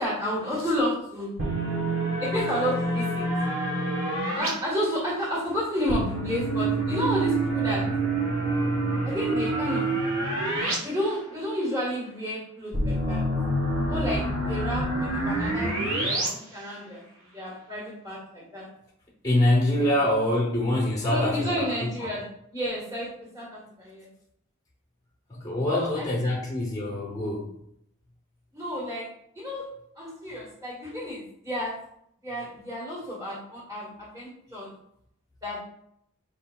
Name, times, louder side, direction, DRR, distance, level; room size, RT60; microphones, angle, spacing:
voice 1, 0.0-1.3 2.2-3.3 4.3-7.9 9.0-9.9 10.8-13.2 13.9-17.0 17.3-18.7 19.7-19.9 21.1-22.3 22.5-23.1 23.3-24.1 25.7-26.3 28.5-29.1 29.3-29.6 29.9-31.7 32.2-34.7 35.4-35.6, equal, 15° right, -5 dB, 1.6 m, -31 dB
sound 1, 1.4-4.5 5.9-10.8 11.1-11.2 12.7-16.3, right 2 dB, 65° right, 1.3 m, -27 dB
voice 2, 19.2-22.1 25.3-27.5, left 1 dB, 15° left, -3 dB, 0.7 m, -25 dB
5.1 x 3.8 x 2.3 m, 0.72 s
head